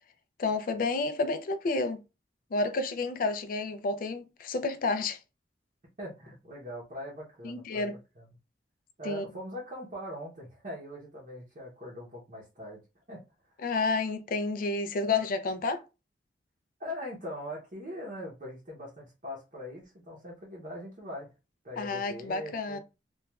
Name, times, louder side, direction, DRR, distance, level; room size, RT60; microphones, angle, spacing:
voice 1, 0.4-2.0 2.5-5.2 7.4-8.0 9.0-9.2 13.6-15.8 21.8-22.8, left 3 dB, 50° left, 0.3 m, -30 dB
voice 2, 6.0-7.9 8.2-8.3 9.0-12.8 13.1-13.2 16.8-21.3 21.6-22.8, left 1 dB, 45° right, 0.7 m, -41 dB
3.0 x 2.3 x 2.2 m
head